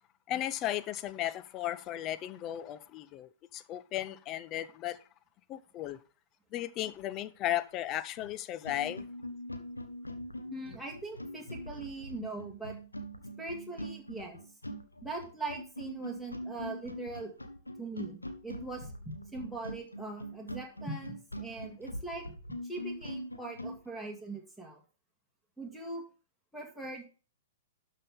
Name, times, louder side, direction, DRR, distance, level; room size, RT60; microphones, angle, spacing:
voice 1, 0.3-5.0 5.5-6.0 6.5-9.0, left 13 dB, 30° left, 0.6 m, -35 dB
sound 1, 8.2-8.3 8.6-23.8, equal, 85° left, 1.2 m, -42 dB
voice 2, 10.5-12.8 13.4-14.4 15.0-17.3 17.8-22.2 22.6-24.8 25.6-26.0 26.5-27.1, right 3 dB, ahead, 1.9 m, -41 dB
12.0 x 5.6 x 3.6 m
figure-of-eight pair, 110°, 0 cm